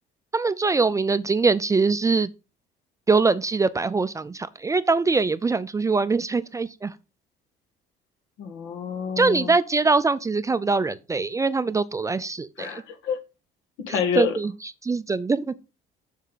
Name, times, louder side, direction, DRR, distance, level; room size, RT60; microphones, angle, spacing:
voice 1, 0.3-2.3 3.1-6.9 9.2-12.8 14.2-15.5, right 4 dB, 15° right, 0.4 m, -23 dB
voice 2, 8.4-9.5 12.6-13.2 13.9-14.3, left 6 dB, 85° left, 1.7 m, -27 dB
7.4 x 6.6 x 4.0 m
cardioid pair, 130°, 20 cm